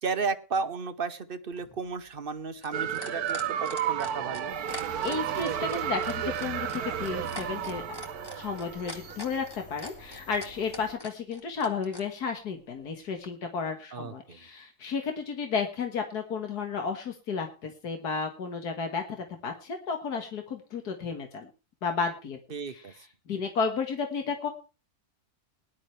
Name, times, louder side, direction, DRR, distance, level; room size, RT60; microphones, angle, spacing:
voice 1, 0.0-4.5 13.9-14.4 22.5-22.9, right 4 dB, 40° right, 10 dB, 1.1 m, -33 dB
sound 1, 1.5-12.1 13.2-13.3, left 1 dB, 15° left, 2.1 m, -43 dB
sound 2, 2.7-9.3, right 9 dB, 75° right, 1.3 m, -32 dB
sound 3, 4.5-10.9, left 1 dB, 60° left, 4.7 m, -49 dB
voice 2, 5.0-8.0 8.3-19.0 19.4-21.5 21.8-22.4 22.7-22.8 23.3-24.5, left 5 dB, 85° left, 4 dB, 2.2 m, -32 dB
19.0 x 11.5 x 3.3 m, 0.32 s
omnidirectional pair, 1.6 m